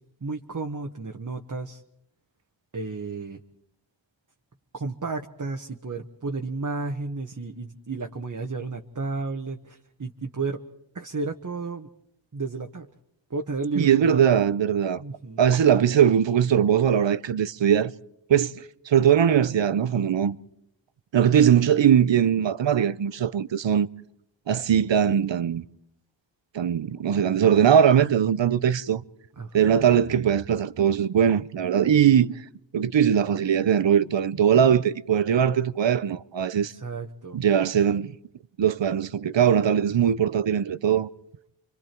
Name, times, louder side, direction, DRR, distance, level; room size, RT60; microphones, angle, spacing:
voice 1, 0.2-1.8 2.7-3.4 4.7-10.6 10.9-11.9 12.3-12.9 13.3-14.2 15.0-15.5 29.4-29.7 36.6-37.4, right 3 dB, 40° right, 1.3 m, -32 dB
voice 2, 13.8-15.0 15.4-17.9 18.3-20.4 21.1-23.9 24.5-25.6 26.5-29.0 29.5-32.3 32.7-36.7 37.3-38.1 38.6-41.1, right 8 dB, 65° right, 0.8 m, -21 dB
30.0 x 25.0 x 4.5 m
wide cardioid pair, 55°, 48 cm